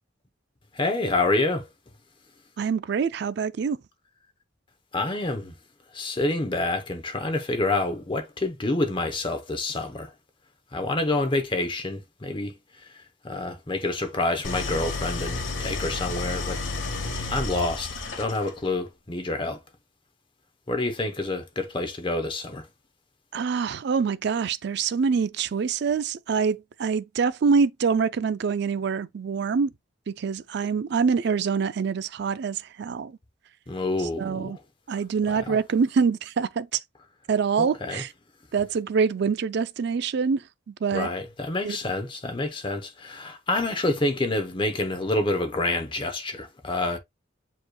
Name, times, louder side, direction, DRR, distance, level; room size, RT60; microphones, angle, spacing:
voice 1, 0.7-1.7 4.9-5.5 5.9-10.1 10.7-16.6 17.3-19.6 20.7-22.7 33.7-34.5 35.3-35.6 37.6-38.0 40.9-47.0, left 2 dB, 25° left, 0.8 m, -28 dB
voice 2, 2.6-3.8 23.3-29.7 30.1-33.2 34.2-34.6 34.9-36.8 37.3-38.1 38.5-41.1 41.6-41.8, right 5 dB, 60° right, 0.4 m, -25 dB
Idling, 14.4-18.7, left 3 dB, 85° left, 1.2 m, -31 dB
7.4 x 3.2 x 2.2 m
head